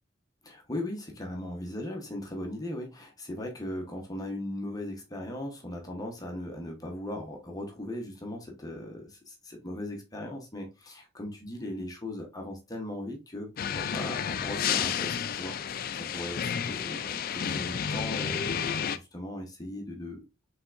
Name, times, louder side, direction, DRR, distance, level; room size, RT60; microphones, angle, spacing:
voice 1, 0.4-20.2, left 1 dB, 20° left, 1 dB, 1.0 m, -38 dB
sound 1, 13.6-19.0, left 8 dB, 45° left, 0.3 m, -31 dB
5.4 x 3.5 x 2.5 m, 0.27 s
head